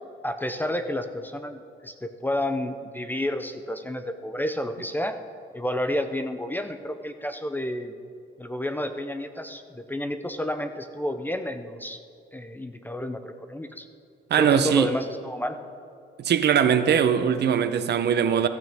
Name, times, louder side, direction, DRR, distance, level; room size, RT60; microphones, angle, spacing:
voice 1, 0.2-5.2 5.5-7.9 8.4-12.0 12.3-13.9 14.4-15.6, left 1 dB, 10° left, 8 dB, 0.5 m, -30 dB
voice 2, 14.3-14.9 16.2-18.5, right 8 dB, 55° right, 10 dB, 0.7 m, -21 dB
15.0 x 13.5 x 3.5 m, 2.5 s
cardioid pair, 145°, 20 cm